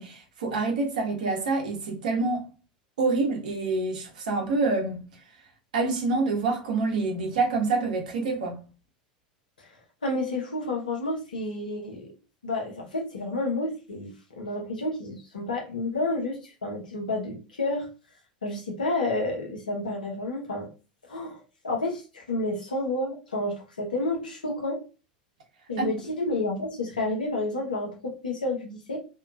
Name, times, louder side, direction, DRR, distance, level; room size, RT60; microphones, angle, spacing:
voice 1, 0.0-2.4 3.0-5.0 5.7-8.6 25.8-25.9, right 3 dB, 70° right, 0.8 m, -26 dB
voice 2, 10.0-12.1 12.4-17.9 18.4-20.7 21.1-24.8 25.7-29.0, left 2 dB, 80° left, 0.8 m, -30 dB
2.8 x 2.3 x 2.3 m
figure-of-eight pair, 85°, 4 cm